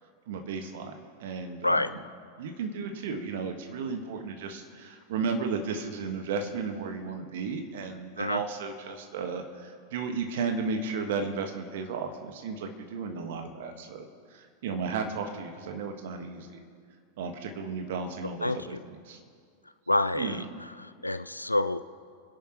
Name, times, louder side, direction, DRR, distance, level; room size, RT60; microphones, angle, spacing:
voice 1, 0.3-0.9 1.2-2.0 2.4-16.6 17.2-19.2 20.1-20.5, right 5 dB, 55° right, 5 dB, 1.7 m, -34 dB
voice 2, 18.4-18.8 19.9-20.4 20.8-21.8, left 2 dB, 85° left, 13 dB, 0.4 m, -28 dB
28.5 x 10.5 x 3.2 m, 2.1 s
figure-of-eight pair, 90°, 0 cm